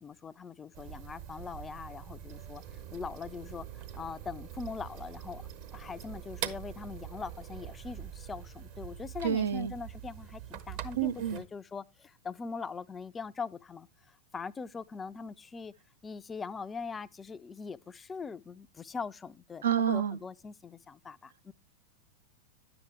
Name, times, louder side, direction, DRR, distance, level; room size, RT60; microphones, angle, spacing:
voice 1, 0.0-2.6 2.9-5.4 5.7-15.7 16.0-21.5, left 5 dB, 15° left, 0.4 m, -42 dB
sound 1, 0.7-11.4, right 10 dB, 45° right, 0.9 m, -44 dB
voice 2, 9.2-9.7 11.0-11.4 19.6-20.2, right 9 dB, 65° right, 0.5 m, -28 dB
10.5 x 7.9 x 3.0 m
figure-of-eight pair, 90°, 0 cm